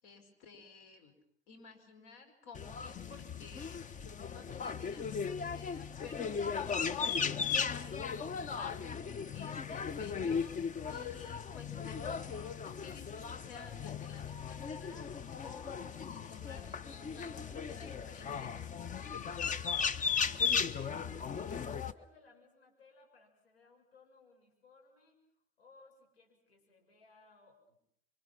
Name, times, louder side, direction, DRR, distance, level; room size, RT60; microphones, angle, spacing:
voice 1, 0.0-1.1 1.5-4.0 4.3-18.6, left 4 dB, 55° left, 6 dB, 5.4 m, -54 dB
sound 1, 2.5-21.9, left 6 dB, 25° left, 1.0 m, -37 dB
voice 2, 20.3-27.9, left 3 dB, 80° left, 1 dB, 7.0 m, -63 dB
27.5 x 25.0 x 5.9 m, 0.70 s
hypercardioid pair, 80°, 30 cm